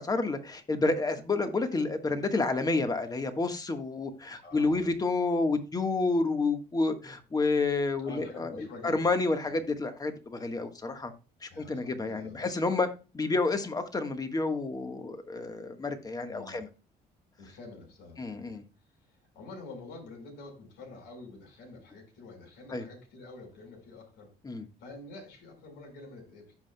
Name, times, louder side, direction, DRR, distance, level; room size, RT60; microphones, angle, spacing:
voice 1, 0.0-11.1 11.4-12.9 13.1-16.7 18.2-18.6 22.7-22.8 24.4-24.6, left 3 dB, 20° left, 1.4 m, -29 dB
voice 2, 4.4-4.9 8.0-9.1 9.5-9.6 11.5-12.5 16.3-16.6 17.4-18.6 18.9-24.3 24.8-26.5, left 2 dB, 85° left, 4.6 m, -47 dB
15.0 x 5.7 x 2.2 m
cardioid pair, 110°, 17 cm